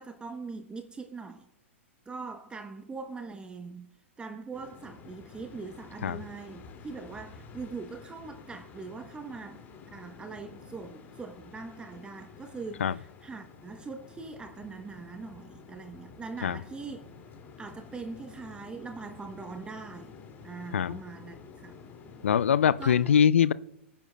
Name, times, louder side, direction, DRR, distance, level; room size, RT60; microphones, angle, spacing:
voice 1, 0.0-1.5 2.1-3.9 4.2-9.6 9.9-17.0 17.6-20.1 20.4-21.8 22.8-23.1, right 4 dB, 15° right, 0.9 m, -42 dB
sound 1, 4.5-22.5, left 5 dB, 30° left, 2.4 m, -50 dB
voice 2, 22.2-23.5, left 8 dB, 75° left, 0.4 m, -23 dB
25.5 x 10.0 x 2.2 m
hypercardioid pair, 105°, 7 cm